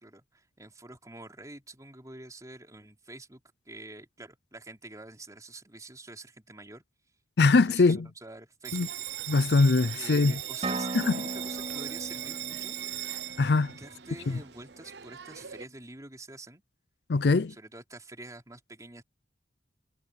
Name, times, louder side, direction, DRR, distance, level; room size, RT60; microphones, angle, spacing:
voice 1, 0.0-6.8 7.5-8.9 9.9-12.8 13.7-16.6 17.5-19.0, right 2 dB, 20° right, 3.9 m, -47 dB
voice 2, 7.4-8.1 8.7-8.9 9.3-10.4 10.9-11.1 13.4-13.7 17.1-17.5, left 3 dB, 60° left, 0.5 m, -22 dB
Bell, 8.6-15.6, right 12 dB, 65° right, 0.7 m, -39 dB
sound 1, 10.6-14.4, right 2 dB, 35° right, 4.6 m, -38 dB
head